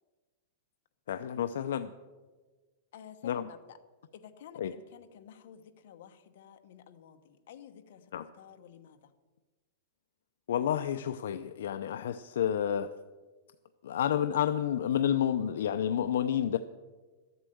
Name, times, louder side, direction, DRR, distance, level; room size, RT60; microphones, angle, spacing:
voice 1, 1.1-1.9 3.2-3.4 4.6-4.7 8.1-8.3 10.5-12.9 13.8-16.6, left 9 dB, 80° left, 9 dB, 0.5 m, -30 dB
voice 2, 2.9-3.8 4.1-9.1, left 9 dB, 60° left, 7 dB, 1.0 m, -52 dB
12.5 x 8.2 x 7.8 m, 1.3 s
supercardioid pair, 170°, 0 cm